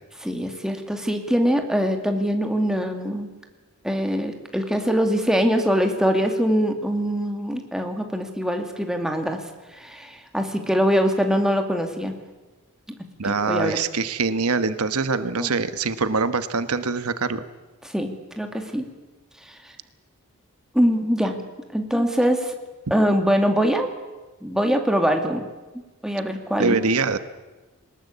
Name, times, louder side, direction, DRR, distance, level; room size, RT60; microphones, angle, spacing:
voice 1, 0.2-3.3 3.8-9.4 9.7-12.2 12.9-13.0 13.2-13.8 15.4-15.5 17.8-18.9 19.5-19.7 20.7-21.4 21.7-22.5 22.9-23.9 24.4-25.5 26.0-26.8, equal, 5° right, 4 dB, 2.2 m, -23 dB
voice 2, 13.2-17.4 26.6-27.2, right 4 dB, 80° right, 12 dB, 1.2 m, -24 dB
22.5 x 20.0 x 8.4 m, 1.2 s
head